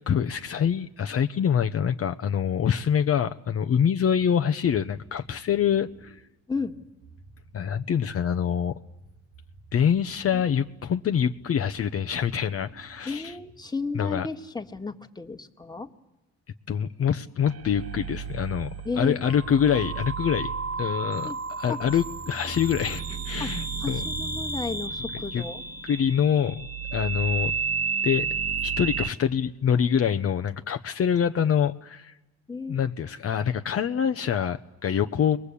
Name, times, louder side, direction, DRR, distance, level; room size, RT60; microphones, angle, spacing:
voice 1, 0.0-6.2 7.5-8.7 9.7-13.4 13.9-14.3 16.7-18.7 19.0-20.5 20.8-24.0 25.3-25.4 25.8-27.5 28.0-28.3 28.6-32.2 32.7-35.4, left 8 dB, 50° left, 8 dB, 0.9 m, -25 dB
sound 1, 4.7-13.9, right 3 dB, 85° right, 2.3 m, -53 dB
voice 2, 13.1-15.9 18.9-19.2 21.2-21.4 21.7-21.8 23.4-23.5 23.8-25.6 32.5-32.8, left 4 dB, 15° left, 6 dB, 1.7 m, -33 dB
sound 2, 17.4-29.1, right 5 dB, 55° right, 1.4 m, -32 dB
30.0 x 21.5 x 8.4 m, 0.98 s
cardioid pair, 90°, 30 cm